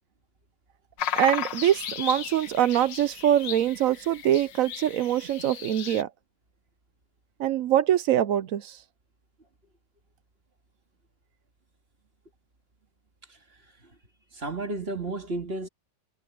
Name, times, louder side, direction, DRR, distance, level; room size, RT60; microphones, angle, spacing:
sound 1, 1.0-6.0, left 9 dB, 85° left, 1.8 m, -35 dB
voice 1, 1.1-6.1 7.4-8.8, right 11 dB, 70° right, 0.8 m, -24 dB
voice 2, 14.3-15.7, right 2 dB, 35° right, 2.3 m, -33 dB
omnidirectional pair, 1.9 m